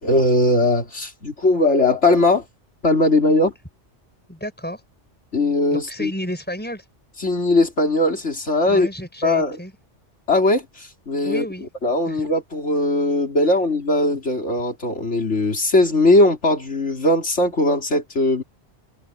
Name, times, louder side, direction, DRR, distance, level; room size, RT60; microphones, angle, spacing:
voice 1, 0.0-2.4 2.8-3.5 5.3-6.1 7.2-8.9 9.2-9.6 10.3-11.4 11.8-18.4, left 2 dB, 80° left, 4.2 m, -19 dB
voice 2, 4.3-4.8 5.7-6.9 8.7-9.7 11.2-11.7 12.1-12.2, equal, 10° left, 5.9 m, -31 dB
omnidirectional pair, 1.2 m